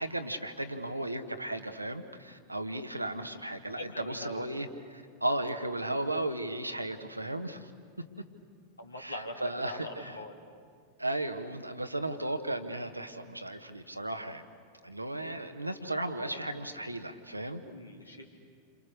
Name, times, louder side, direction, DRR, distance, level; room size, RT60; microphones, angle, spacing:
voice 1, 0.0-7.7 9.0-10.1 11.0-14.4 14.8-17.6, right 1 dB, 85° right, 7 dB, 1.5 m, -35 dB
voice 2, 3.8-4.4 8.8-10.4 16.0-16.7 17.6-18.2, left 1 dB, 85° left, 2 dB, 3.1 m, -42 dB
29.0 x 27.5 x 6.7 m, 2.1 s
figure-of-eight pair, 90°, 0 cm